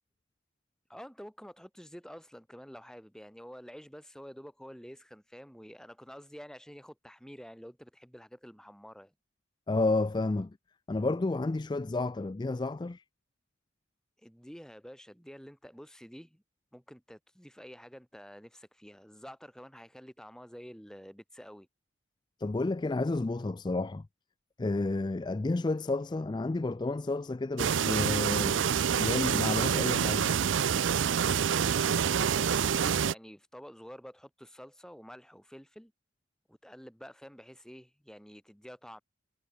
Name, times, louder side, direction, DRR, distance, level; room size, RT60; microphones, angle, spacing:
voice 1, 0.9-9.1 14.2-16.4 16.7-21.7 32.0-35.9 36.5-39.0, equal, 5° left, 5.1 m, -49 dB
voice 2, 9.7-10.6 10.9-13.0 22.4-24.1 24.6-28.7 29.0-30.3, left 2 dB, 25° left, 0.4 m, -31 dB
sound 1, 27.6-33.1, right 7 dB, 75° right, 0.5 m, -27 dB
head